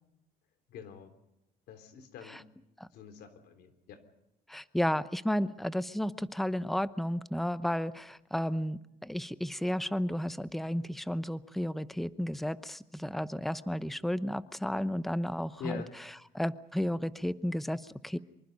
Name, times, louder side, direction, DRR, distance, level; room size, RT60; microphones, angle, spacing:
voice 1, 0.7-1.1 1.7-2.5 2.9-4.0 15.6-15.9, left 7 dB, 75° left, 9 dB, 3.4 m, -44 dB
voice 2, 4.5-15.8 16.3-18.2, equal, ahead, 14 dB, 0.8 m, -33 dB
25.0 x 23.5 x 5.3 m, 0.87 s
cardioid pair, 110°, 17 cm